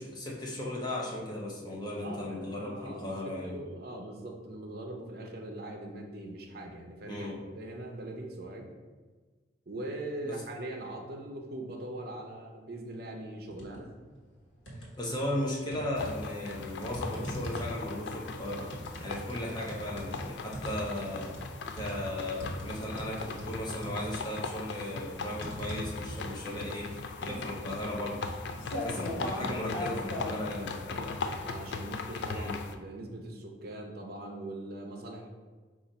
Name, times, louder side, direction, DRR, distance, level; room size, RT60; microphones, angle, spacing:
voice 1, 0.0-3.6 7.1-7.4 10.2-10.4 15.0-18.7 19.0-21.3 21.7-28.2 28.7-31.2 32.2-32.6, left 1 dB, 20° left, -3 dB, 0.8 m, -36 dB
voice 2, 2.0-7.3 7.5-8.7 9.7-13.9 30.9-35.3, right 1 dB, 50° right, 2 dB, 0.6 m, -41 dB
sound 1, 13.5-13.8 14.2-15.2 15.7-30.4, equal, 80° left, 1.2 m, -40 dB
sound 2, 16.0-32.7, left 4 dB, 65° left, 0.3 m, -39 dB
4.9 x 2.5 x 4.1 m, 1.4 s
head